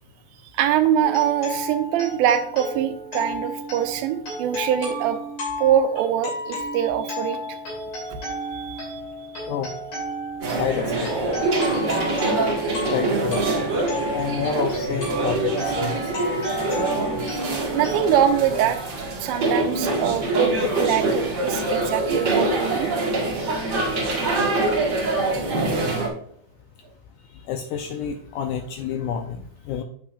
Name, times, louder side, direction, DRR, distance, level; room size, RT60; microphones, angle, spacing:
voice 1, 0.5-5.2 5.6-7.6 8.1-8.2 8.5-9.0 17.7-18.8 19.2-22.9, right 9 dB, 85° right, 8 dB, 2.5 m, -23 dB
sound 1, 1.0-18.3, equal, 55° left, 4.5 m, -33 dB
sound 2, 10.4-26.1, right 2 dB, 55° right, 1.1 m, -24 dB
voice 2, 10.6-11.4 12.7-13.7 14.1-16.1 27.5-29.8, left 8 dB, 90° left, 5 dB, 1.8 m, -29 dB
8.5 x 7.6 x 2.4 m, 0.64 s
omnidirectional pair, 4.3 m